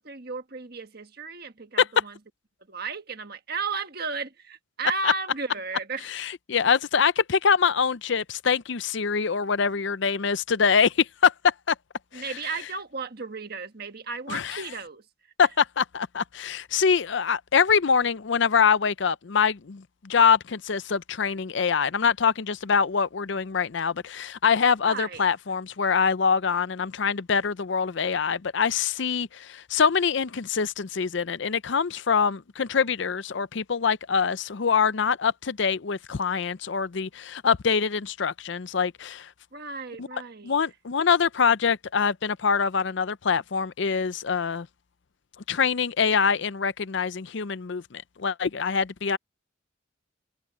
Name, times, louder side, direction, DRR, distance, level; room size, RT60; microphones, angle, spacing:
voice 1, 0.0-2.2 2.7-6.1 12.1-15.0 24.8-25.2 39.5-40.6, right 4 dB, 50° right, 1.5 m, -34 dB
voice 2, 6.1-11.7 12.1-12.2 14.3-14.6 15.4-39.3 40.0-40.1 40.4-44.7 45.5-49.2, left 6 dB, 60° left, 0.5 m, -24 dB
head